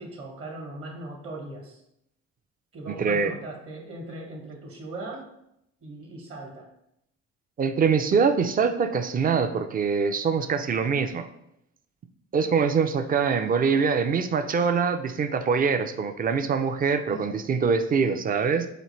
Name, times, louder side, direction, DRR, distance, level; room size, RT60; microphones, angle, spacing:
voice 1, 0.0-1.8 2.7-5.3 5.8-6.7 17.1-17.4, right 2 dB, 50° right, 1 dB, 1.1 m, -39 dB
voice 2, 3.0-3.3 7.6-11.3 12.3-18.7, right 5 dB, 30° right, 8 dB, 0.4 m, -24 dB
5.1 x 2.5 x 3.1 m, 0.79 s
cardioid pair, 90°, 30 cm